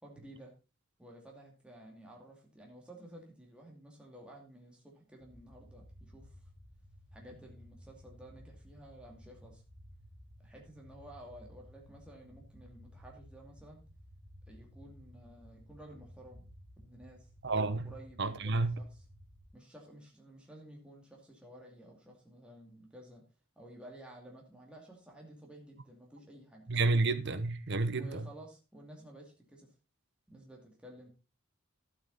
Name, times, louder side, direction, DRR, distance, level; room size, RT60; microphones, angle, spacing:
voice 1, 0.0-0.5 1.0-6.4 7.1-9.6 10.4-13.8 14.5-16.5 16.8-17.3 17.8-19.0 19.5-23.2 23.6-26.7 27.9-29.7 30.3-31.1, right 1 dB, 5° right, 2.5 m, -53 dB
sound 1, 5.2-19.5, equal, 20° right, 2.8 m, -56 dB
voice 2, 17.4-17.9 18.2-18.8 26.7-28.3, right 3 dB, 55° right, 1.0 m, -30 dB
12.0 x 8.4 x 4.1 m
head